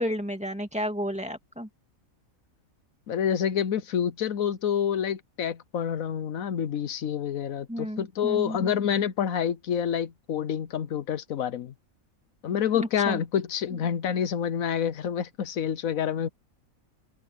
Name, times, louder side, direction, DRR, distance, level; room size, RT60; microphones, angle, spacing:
voice 1, 0.0-1.7 7.7-8.7 12.7-13.2, equal, 5° right, 2.2 m, -32 dB
voice 2, 3.1-11.7 12.4-16.3, left 8 dB, 80° left, 1.3 m, -28 dB
open air
omnidirectional pair, 1.4 m